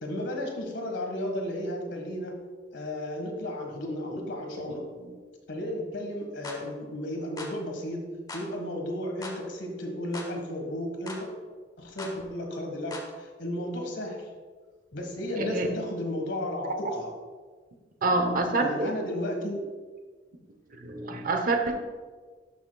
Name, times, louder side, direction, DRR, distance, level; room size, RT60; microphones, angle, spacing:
voice 1, 0.0-2.4 2.7-4.8 5.5-8.0 8.3-11.3 11.8-14.2 14.9-17.1 18.6-19.6, left 1 dB, 85° left, 2 dB, 1.5 m, -33 dB
sound 1, 6.4-6.6 7.4-7.6 8.3-8.5 9.2-9.4 10.1-10.3 11.1-11.2 12.0-12.2 12.9-13.1, left 2 dB, 20° left, 1.1 m, -39 dB
voice 2, 15.4-15.7 18.0-18.9 20.7-21.8, right 2 dB, 50° right, 5 dB, 0.8 m, -27 dB
11.5 x 6.5 x 2.3 m, 1.4 s
head